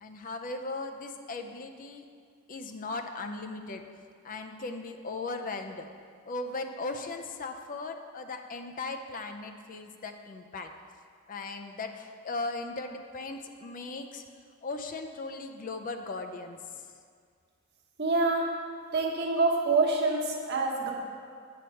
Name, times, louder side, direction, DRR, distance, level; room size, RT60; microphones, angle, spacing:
voice 1, 0.0-2.0 2.5-3.8 4.2-5.8 6.3-10.7 11.3-14.2 14.6-16.8, left 3 dB, 40° left, 5 dB, 0.5 m, -38 dB
voice 2, 18.0-18.5 18.9-20.9, right 3 dB, 55° right, -1 dB, 1.2 m, -26 dB
8.5 x 4.4 x 6.3 m, 2.1 s
head